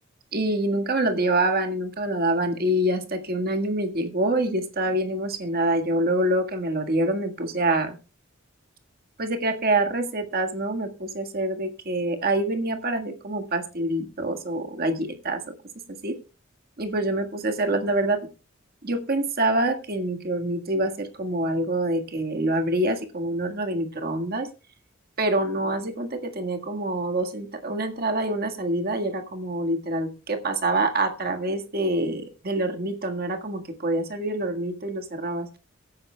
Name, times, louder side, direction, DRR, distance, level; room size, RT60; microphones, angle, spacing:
voice 1, 0.3-8.0 9.2-15.4 16.0-16.1 16.8-18.2 18.8-24.5 25.2-35.5, right 1 dB, 50° right, 5 dB, 1.7 m, -26 dB
23.0 x 9.4 x 2.3 m, 0.32 s
head